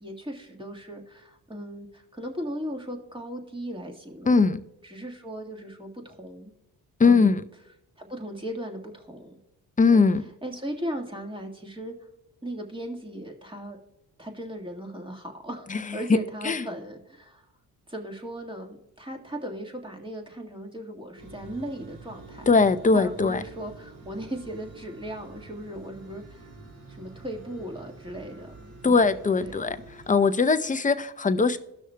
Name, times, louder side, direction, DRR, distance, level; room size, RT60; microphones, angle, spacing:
voice 1, 0.0-4.5 4.8-6.5 7.0-7.4 8.0-9.4 9.9-10.0 10.4-11.9 12.4-13.8 14.2-17.5 17.9-22.5 22.9-26.5 26.9-29.0 29.4-29.8, equal, 15° right, 2 dB, 1.7 m, -37 dB
voice 2, 4.3-4.6 7.0-7.4 9.8-10.2 15.7-15.8 16.4-16.6 22.5-23.4 28.8-29.8 30.1-31.6, left 4 dB, 20° left, 11 dB, 0.6 m, -20 dB
sound 1, 21.2-30.2, right 3 dB, 60° right, 2.5 m, -47 dB
16.5 x 6.3 x 2.2 m, 0.87 s
supercardioid pair, 60°, 39 cm